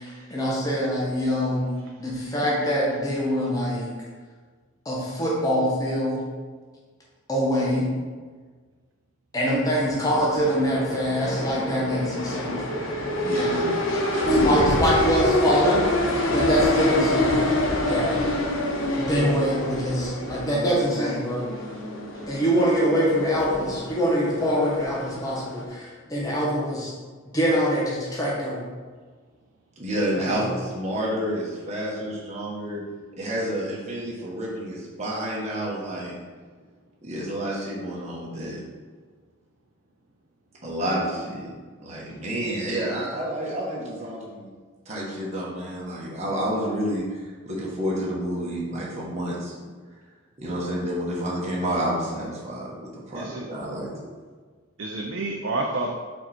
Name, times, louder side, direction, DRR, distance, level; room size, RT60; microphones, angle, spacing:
voice 1, 0.0-1.7 2.0-3.9 4.8-6.3 7.3-8.0 9.3-12.5 13.3-13.6 14.4-15.9 16.3-17.4 17.8-18.2 19.0-21.5 22.3-26.9 27.3-28.6 30.2-30.4, equal, 15° left, -5 dB, 1.2 m, -24 dB
sound 1, 9.7-25.6, left 1 dB, 70° left, 0.9 m, -26 dB
voice 2, 13.2-13.8 14.1-14.6 29.8-32.8 33.2-36.2 37.0-38.6 40.6-41.5 41.8-44.5 44.8-49.5 50.4-53.9, equal, 30° right, -5 dB, 1.5 m, -29 dB
voice 3, 53.1-53.5 54.8-55.9, right 2 dB, 65° right, 0 dB, 0.6 m, -30 dB
4.9 x 4.7 x 4.4 m, 1.5 s
head